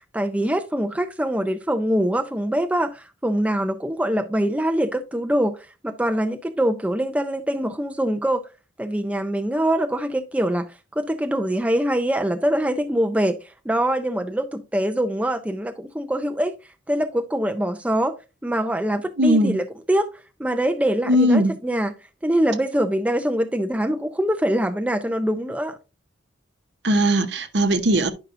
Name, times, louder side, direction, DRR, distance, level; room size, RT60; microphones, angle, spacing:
voice 1, 0.1-5.6 5.8-8.4 8.8-10.7 11.0-13.4 13.7-16.5 16.9-18.1 18.4-20.1 20.4-21.9 22.2-25.8, right 1 dB, 5° right, 0.4 m, -23 dB
voice 2, 19.2-19.6 21.1-21.5 26.8-28.1, equal, 60° right, 0.9 m, -19 dB
10.5 x 5.5 x 2.5 m
head